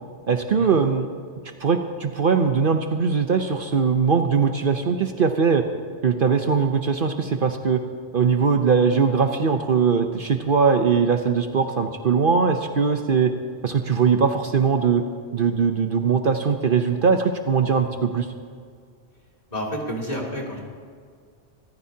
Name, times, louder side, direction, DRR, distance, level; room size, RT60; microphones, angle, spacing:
voice 1, 0.3-1.1 1.6-5.6 6.0-7.8 8.1-13.3 13.6-15.0 15.3-18.3, right 5 dB, 55° right, 6 dB, 0.9 m, -20 dB
voice 2, 19.5-20.6, equal, 35° left, -2 dB, 2.7 m, -29 dB
25.0 x 14.5 x 2.8 m, 2.1 s
omnidirectional pair, 1.2 m